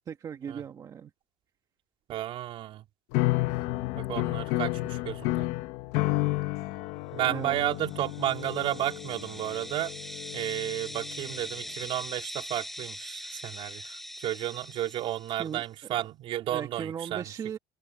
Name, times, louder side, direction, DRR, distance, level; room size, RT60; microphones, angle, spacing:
voice 1, 0.1-1.1 7.2-7.6 15.4-15.6 16.5-17.6, right 8 dB, 30° right, 1.9 m, -37 dB
voice 2, 2.1-2.8 3.9-5.5 7.1-9.9 10.3-17.3, right 13 dB, 55° right, 3.6 m, -32 dB
sound 1, 3.1-11.4, left 19 dB, 75° left, 1.3 m, -31 dB
sound 2, 7.7-15.5, equal, ahead, 5.6 m, -42 dB
cardioid pair, 145°, 11 cm